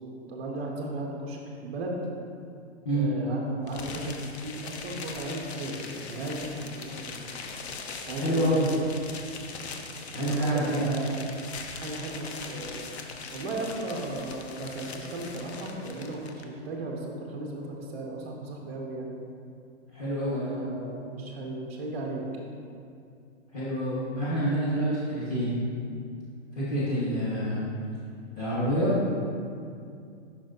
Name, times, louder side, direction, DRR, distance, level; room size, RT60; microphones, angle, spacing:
voice 1, 0.0-1.9 2.9-7.2 8.1-8.6 10.2-11.3 11.7-12.9 13.3-19.1 20.2-22.2, right 2 dB, 15° right, -2 dB, 0.4 m, -36 dB
sound 1, 3.7-16.4, left 4 dB, 65° left, 0.7 m, -41 dB
voice 2, 8.1-8.7 10.1-10.9 19.9-20.5 23.5-25.6 26.5-27.7 28.4-29.1, equal, 30° left, -10 dB, 1.4 m, -27 dB
8.4 x 5.7 x 2.6 m, 2.4 s
hypercardioid pair, 165°, 36 cm